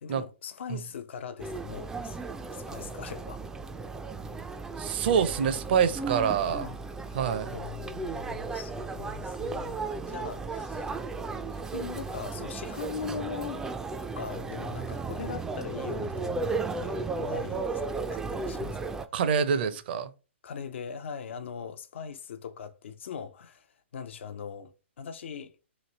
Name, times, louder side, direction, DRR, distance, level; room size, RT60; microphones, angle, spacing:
voice 1, 0.0-2.2 2.5-3.4 6.4-6.8 7.5-10.9 11.5-13.7 14.1-18.8 20.4-23.7 23.9-24.7 25.0-25.5, left 7 dB, 65° left, 0.5 m, -40 dB
sound 1, 1.4-19.1, right 3 dB, 10° right, 0.3 m, -35 dB
voice 2, 4.8-6.7 7.1-7.5 19.1-20.1, right 7 dB, 50° right, 0.6 m, -26 dB
3.1 x 2.6 x 4.0 m
hypercardioid pair, 130°, 7 cm